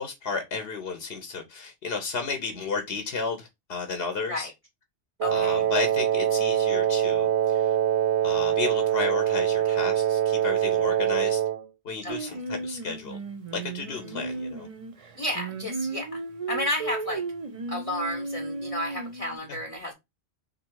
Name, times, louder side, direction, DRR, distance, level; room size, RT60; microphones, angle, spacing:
voice 1, 0.0-4.5 5.3-7.8 8.2-11.4 11.8-13.2 13.5-14.7 19.5-19.6, left 4 dB, 65° left, 0.9 m, -33 dB
voice 2, 5.2-5.6 12.0-12.4 13.9-14.2 15.2-16.2 16.5-17.2 17.7-19.9, left 1 dB, 35° left, 0.8 m, -32 dB
Wind instrument woodwind instrument, 5.2-11.7, right 10 dB, 85° right, 0.9 m, -24 dB
Singing, 12.1-19.4, right 3 dB, 40° right, 0.5 m, -35 dB
3.7 x 2.7 x 4.4 m
omnidirectional pair, 1.1 m